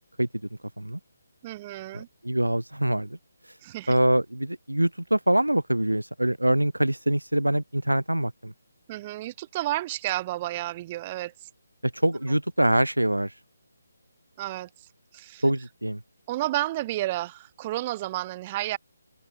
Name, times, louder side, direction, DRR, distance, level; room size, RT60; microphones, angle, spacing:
voice 1, 1.4-2.1 3.6-3.9 8.9-11.5 14.4-15.4 16.3-18.8, right 16 dB, 25° right, 2.1 m, -31 dB
voice 2, 1.9-3.2 3.9-8.5 11.9-13.3 15.4-16.0, right 1 dB, 85° right, 0.6 m, -24 dB
open air
figure-of-eight pair, 145°, 0 cm